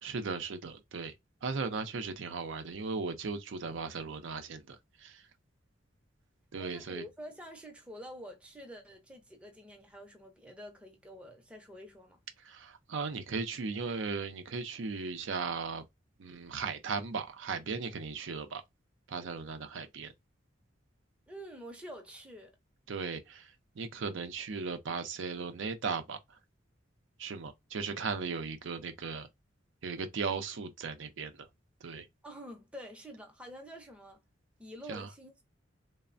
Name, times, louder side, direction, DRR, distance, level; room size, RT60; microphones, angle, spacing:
voice 1, 0.0-1.1 1.4-5.2 6.5-7.0 12.4-15.8 16.2-18.6 19.1-20.1 22.9-26.2 27.2-29.3 29.8-31.3 31.8-32.1 34.9-35.1, right 4 dB, 75° right, 0.5 m, -37 dB
voice 2, 6.6-12.2 21.3-22.5 32.2-34.2 34.6-35.4, equal, 5° right, 0.5 m, -47 dB
3.1 x 2.0 x 2.4 m
head